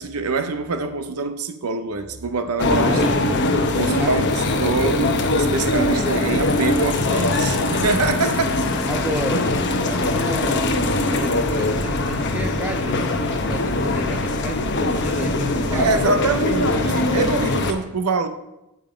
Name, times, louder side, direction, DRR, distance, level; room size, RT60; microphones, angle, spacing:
voice 1, 0.0-3.3 3.7-8.6 15.7-18.3, right 3 dB, 90° right, 0.7 m, -24 dB
sound 1, 2.6-17.7, left 2 dB, 55° left, 0.9 m, -21 dB
voice 2, 2.8-3.3 4.0-4.2 8.9-16.1, right 1 dB, 5° right, 0.3 m, -32 dB
9.4 x 5.4 x 5.0 m
head